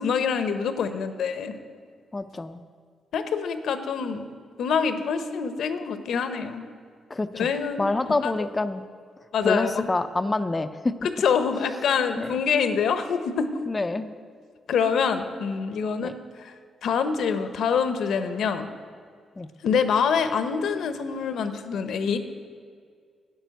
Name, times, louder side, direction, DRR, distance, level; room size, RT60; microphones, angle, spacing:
voice 1, 0.0-1.5 3.1-4.3 4.6-6.7 7.3-7.9 8.2-8.5 9.3-9.9 11.2-13.5 14.7-16.5 16.8-18.7 19.6-22.2, left 6 dB, 80° left, 9 dB, 0.8 m, -25 dB
voice 2, 2.1-2.6 7.1-7.5 7.8-8.8 9.4-10.9 12.2-12.4 13.7-14.1 16.0-16.1 19.4-19.5, left 2 dB, 20° left, 9 dB, 0.4 m, -27 dB
10.5 x 6.7 x 9.2 m, 2.1 s
cardioid pair, 120°, 0 cm